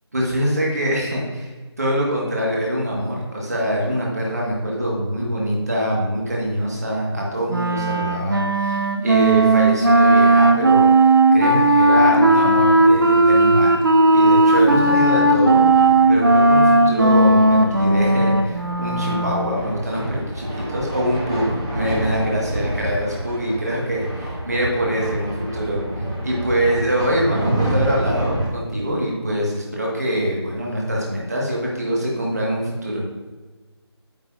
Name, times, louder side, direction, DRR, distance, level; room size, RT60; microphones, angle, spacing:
voice 1, 0.1-13.8 14.1-33.0, equal, 35° right, -3 dB, 1.6 m, -24 dB
Wind instrument woodwind instrument, 7.5-19.5, right 2 dB, 50° right, 0.9 m, -15 dB
sound 1, 14.7-28.5, right 1 dB, 15° right, 2.3 m, -29 dB
9.1 x 6.7 x 2.6 m, 1.3 s
figure-of-eight pair, 175°, 15 cm